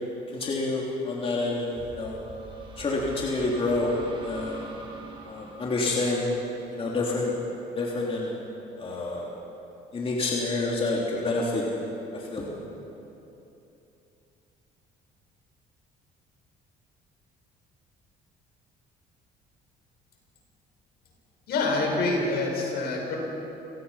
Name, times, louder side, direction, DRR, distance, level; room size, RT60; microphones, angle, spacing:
voice 1, 0.3-2.2 2.8-3.9 4.2-4.6 5.2-6.3 6.7-7.3 7.8-8.4 8.8-9.3 9.9-11.8 12.1-12.5, left 2 dB, 35° left, -3 dB, 3.4 m, -28 dB
sound 1, 1.8-7.4, right 2 dB, 30° right, 6.2 m, -45 dB
voice 2, 21.5-23.2, left 3 dB, 70° left, 0 dB, 6.0 m, -26 dB
29.0 x 18.0 x 5.8 m, 2.9 s
cardioid pair, 110°, 17 cm